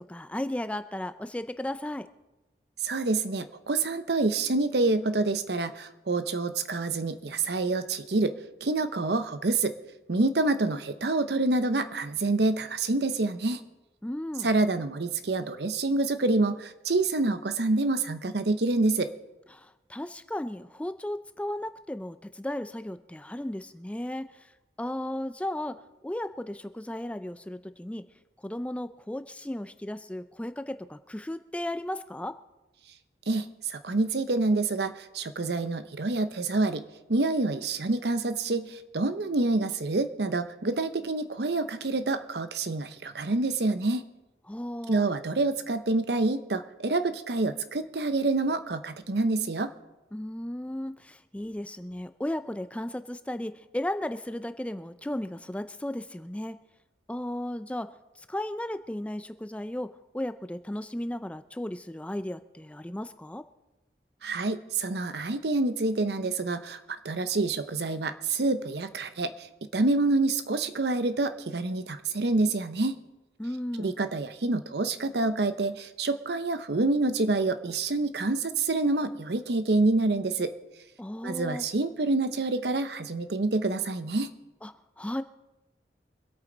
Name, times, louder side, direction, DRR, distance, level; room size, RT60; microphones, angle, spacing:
voice 1, 0.0-2.1 14.0-14.5 19.5-24.5 24.8-28.1 28.4-32.4 44.5-45.1 50.1-56.6 57.1-63.5 73.4-74.0 81.0-81.6 84.6-85.2, left 1 dB, 5° left, 11 dB, 0.4 m, -35 dB
voice 2, 2.8-8.3 8.6-9.7 10.1-13.6 14.4-19.1 33.3-36.8 37.1-44.0 44.9-49.7 64.2-69.5 69.7-73.0 73.8-80.5 81.2-84.3, right 2 dB, 70° right, 11 dB, 0.8 m, -27 dB
24.5 x 8.7 x 3.9 m, 1.0 s
head